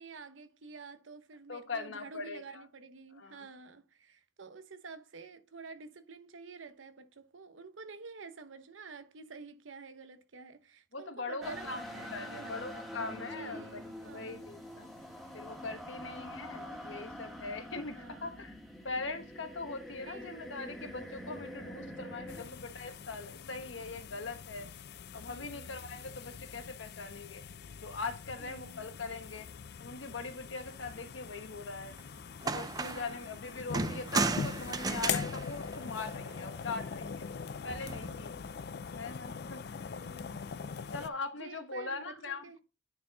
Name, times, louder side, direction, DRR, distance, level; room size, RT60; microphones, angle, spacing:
voice 1, 0.0-14.5 18.0-18.5 20.0-20.4 21.8-22.6 25.2-25.7 28.4-28.9 32.9-33.4 37.9-38.4 39.9-40.4 41.4-42.6, right 4 dB, 90° right, 0.8 m, -50 dB
voice 2, 1.5-2.6 3.2-3.5 10.9-14.9 15.3-18.6 18.8-24.7 25.1-27.4 27.8-29.5 29.8-32.0 32.4-37.3 37.6-38.3 38.9-39.9 40.7-42.6, left 3 dB, 80° left, 1.2 m, -41 dB
sound 1, 11.4-22.4, left 1 dB, ahead, 1.6 m, -45 dB
sound 2, 22.3-41.1, left 6 dB, 55° left, 0.4 m, -42 dB
sound 3, 32.0-32.1 32.4-33.2 33.7-36.5 37.7-38.1, right 3 dB, 20° right, 0.4 m, -34 dB
9.4 x 4.4 x 3.9 m
head